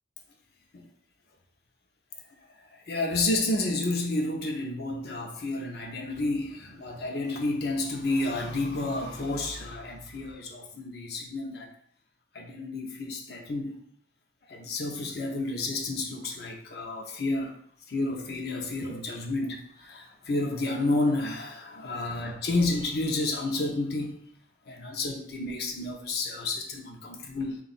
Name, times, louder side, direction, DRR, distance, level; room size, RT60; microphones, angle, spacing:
voice 1, 2.7-11.7 12.3-13.8 14.5-17.5 17.9-24.1 24.7-27.6, left 2 dB, 65° left, 1 dB, 0.6 m, -30 dB
3.7 x 2.3 x 4.0 m, 0.63 s
head